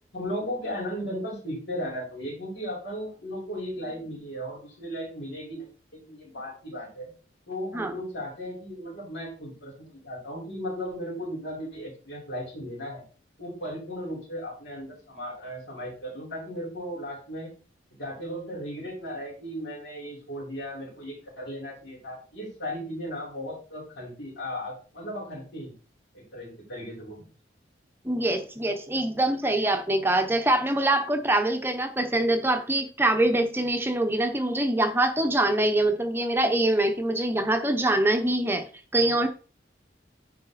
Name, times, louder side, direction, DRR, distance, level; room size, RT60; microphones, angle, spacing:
voice 1, 0.1-7.1 7.5-13.1 13.4-17.5 18.0-25.7 26.1-27.3, equal, 80° left, -3 dB, 4.8 m, -36 dB
voice 2, 28.0-38.6 38.9-39.3, right 1 dB, 10° right, 6 dB, 0.8 m, -24 dB
9.8 x 4.9 x 4.1 m, 0.37 s
head